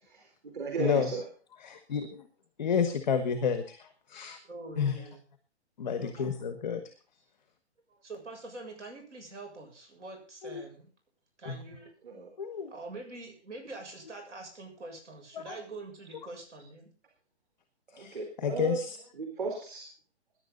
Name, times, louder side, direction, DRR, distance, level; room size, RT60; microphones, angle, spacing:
voice 1, 0.1-1.3 12.0-12.3 17.9-18.8 19.1-19.9, right 4 dB, 45° right, 3 dB, 4.0 m, -35 dB
voice 2, 1.7-2.1 2.6-3.8 4.1-4.4 4.8-4.9 5.8-6.8 10.4-10.6 11.4-11.6 12.4-12.7 18.0-18.1 18.4-18.8, left 7 dB, ahead, 7 dB, 0.5 m, -29 dB
voice 3, 4.2-5.2 6.0-6.3 7.9-10.9 11.4-11.9 12.7-16.9, right 2 dB, 85° right, 3 dB, 7.3 m, -45 dB
21.5 x 10.5 x 4.0 m, 0.39 s
hypercardioid pair, 175°, 35 cm